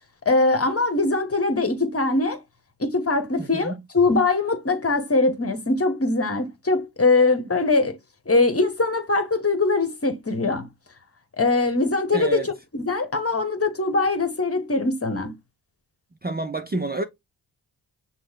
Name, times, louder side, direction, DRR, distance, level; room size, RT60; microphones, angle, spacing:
voice 1, 0.2-2.4 2.8-8.0 8.3-10.7 11.4-15.3, left 3 dB, 30° left, 1.3 m, -22 dB
voice 2, 3.4-3.8 12.1-12.5 16.2-17.0, right 2 dB, 20° right, 0.6 m, -29 dB
6.1 x 2.2 x 3.7 m
supercardioid pair, 40°, 46 cm